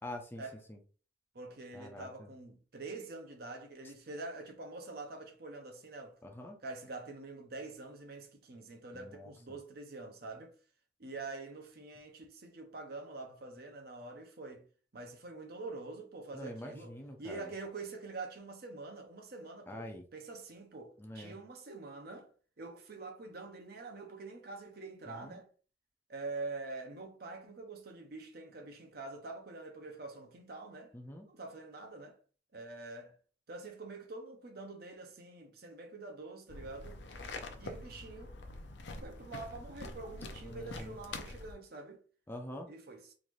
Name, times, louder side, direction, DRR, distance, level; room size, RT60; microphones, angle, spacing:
voice 1, 0.0-0.4 0.7-0.8 1.7-2.3 6.2-6.6 8.9-9.3 16.4-17.4 19.7-20.0 21.0-21.3 30.9-31.3 40.4-40.9 42.3-42.7, left 1 dB, 10° left, 0.4 m, -45 dB
voice 2, 1.3-6.2 6.6-10.6 11.0-14.7 14.9-25.5 26.1-30.9 31.3-32.2 32.5-33.1 33.5-37.0 37.6-38.3 39.0-42.0 42.7-43.1, right 3 dB, 55° right, 0.8 m, -46 dB
sound 1, 36.5-41.5, left 2 dB, 70° left, 0.5 m, -45 dB
3.9 x 2.6 x 3.1 m
head